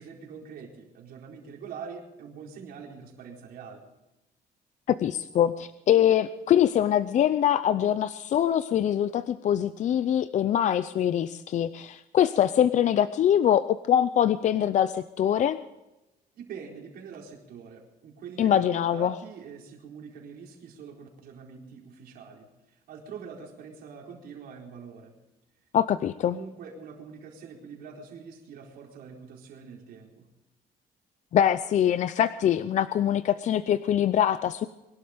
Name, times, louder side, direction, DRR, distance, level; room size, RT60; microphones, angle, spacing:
voice 1, 0.0-3.8 16.4-25.2 26.3-30.3, right 6 dB, 70° right, 0 dB, 4.4 m, -44 dB
voice 2, 4.9-15.6 18.4-19.1 25.7-26.4 31.3-34.7, left 10 dB, 50° left, 13 dB, 0.6 m, -23 dB
23.0 x 12.0 x 5.2 m, 0.99 s
cardioid pair, 140°, 16 cm